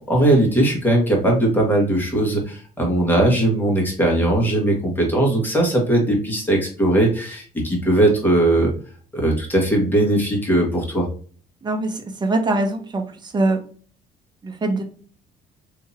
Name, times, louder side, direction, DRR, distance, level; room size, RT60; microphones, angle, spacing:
voice 1, 0.1-8.7 9.1-11.1, right 1 dB, 10° left, -1 dB, 1.6 m, -19 dB
voice 2, 11.6-13.0 13.3-13.6 14.4-14.8, right 2 dB, 25° right, 4 dB, 0.8 m, -22 dB
3.5 x 2.9 x 2.8 m, 0.42 s
cardioid pair, 110°, 17 cm